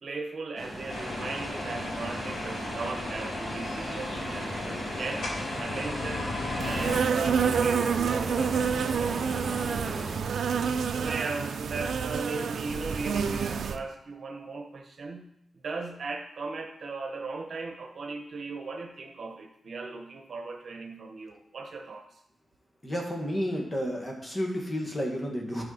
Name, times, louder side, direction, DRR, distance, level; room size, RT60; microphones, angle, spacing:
voice 1, 0.0-5.3 5.6-6.3 6.6-10.4 11.0-22.1, right 3 dB, 60° right, 3 dB, 1.1 m, -37 dB
sound 1, 0.6-10.2, right 1 dB, 10° right, 2.2 m, -39 dB
sound 2, 0.9-7.0, left 2 dB, 75° left, 3.4 m, -35 dB
Insect, 6.6-13.8, right 6 dB, 80° right, 0.5 m, -28 dB
voice 2, 22.8-25.6, equal, 25° left, 0 dB, 1.9 m, -31 dB
12.0 x 4.9 x 4.1 m, 0.76 s
wide cardioid pair, 115°, 0 cm